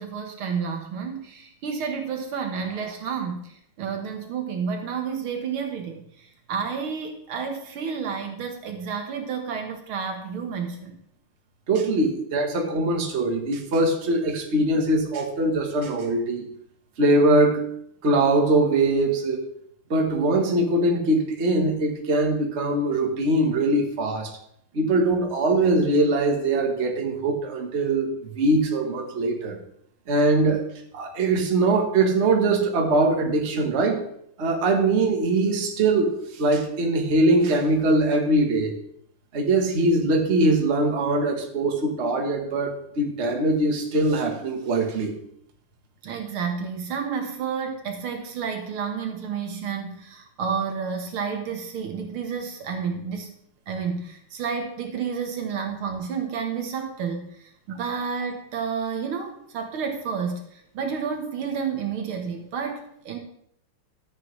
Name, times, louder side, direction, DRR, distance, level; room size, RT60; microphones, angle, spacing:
voice 1, 0.0-11.0 46.0-53.3 53.7-63.2, right 6 dB, 75° right, 3 dB, 2.1 m, -30 dB
voice 2, 11.7-16.4 17.0-17.6 18.0-19.4 19.9-24.3 24.7-29.6 30.1-30.6 30.9-34.0 34.4-38.7 39.3-45.1, right 2 dB, 35° right, 2 dB, 1.4 m, -22 dB
13.5 x 8.1 x 3.2 m, 0.70 s
omnidirectional pair, 2.4 m